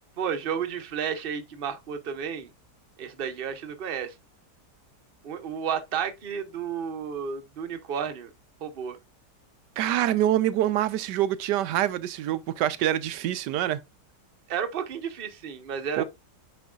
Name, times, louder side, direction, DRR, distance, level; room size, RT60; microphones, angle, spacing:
voice 1, 0.2-2.5 3.0-4.1 5.2-8.3 8.6-9.0 14.5-16.0, right 7 dB, 40° right, 1.0 m, -32 dB
voice 2, 9.8-13.8 16.0-16.1, right 12 dB, 90° right, 1.2 m, -25 dB
9.1 x 5.3 x 2.4 m
omnidirectional pair, 1.8 m